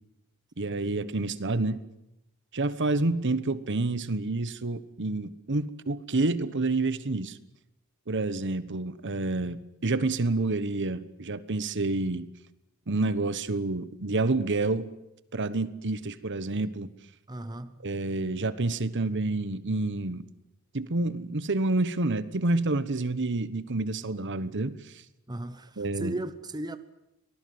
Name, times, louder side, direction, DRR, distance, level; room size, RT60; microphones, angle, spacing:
voice 1, 0.6-1.8 2.5-7.4 8.1-12.3 12.9-14.9 15.3-16.9 17.8-20.2 20.7-24.8 25.8-26.1, right 2 dB, 55° right, 1.2 m, -28 dB
voice 2, 17.3-17.9 25.3-26.8, right 1 dB, 20° right, 0.9 m, -36 dB
24.0 x 19.0 x 9.6 m
head